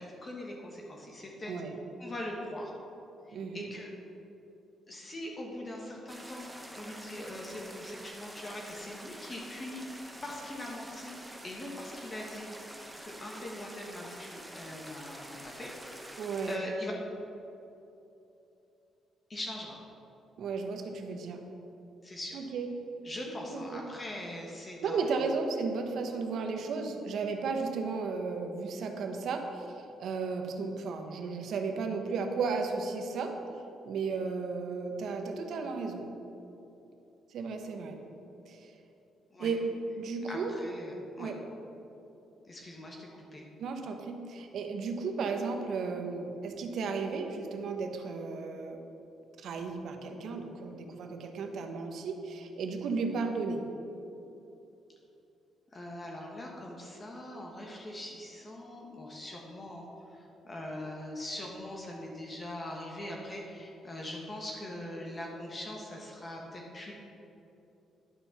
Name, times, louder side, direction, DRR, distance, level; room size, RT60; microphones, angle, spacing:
voice 1, 0.0-1.5 2.0-2.7 3.3-3.9 4.9-9.9 10.2-12.5 13.0-16.2 16.5-16.9 19.3-19.8 22.0-22.4 23.0-25.3 39.3-39.6 40.3-41.3 42.4-43.5 55.7-66.9, left 1 dB, 30° left, -1 dB, 1.4 m, -42 dB
voice 2, 3.3-3.7 16.2-16.6 20.4-21.4 22.3-22.7 23.3-23.8 24.8-33.3 33.8-36.1 37.3-38.0 38.4-38.7 39.4-40.5 41.2-41.4 43.6-48.8 49.4-53.6, right 4 dB, 70° right, 4 dB, 0.9 m, -34 dB
sound 1, 6.1-16.6, right 1 dB, 5° right, 0.9 m, -47 dB
11.0 x 4.3 x 5.8 m, 2.9 s
cardioid pair, 90°, 0 cm